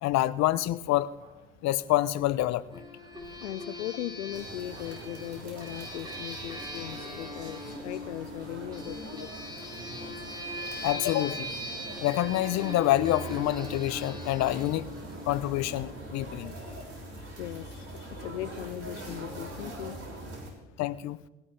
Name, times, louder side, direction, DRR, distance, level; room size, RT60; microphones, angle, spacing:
voice 1, 0.0-1.1 1.6-2.7 10.8-11.5 12.0-14.9 15.3-16.5 20.8-21.2, left 15 dB, 50° left, 16 dB, 0.8 m, -27 dB
sound 1, 0.6-15.8, right 3 dB, 85° right, 3.1 m, -59 dB
sound 2, 2.7-15.9, left 1 dB, 10° right, 4.5 m, -41 dB
voice 2, 3.4-9.3 9.9-10.0 17.2-20.1, left 14 dB, 80° left, 15 dB, 0.5 m, -39 dB
sound 3, 4.3-20.5, right 1 dB, 40° right, 6.2 m, -43 dB
18.0 x 17.5 x 3.4 m, 0.97 s
hypercardioid pair, 65°, 35 cm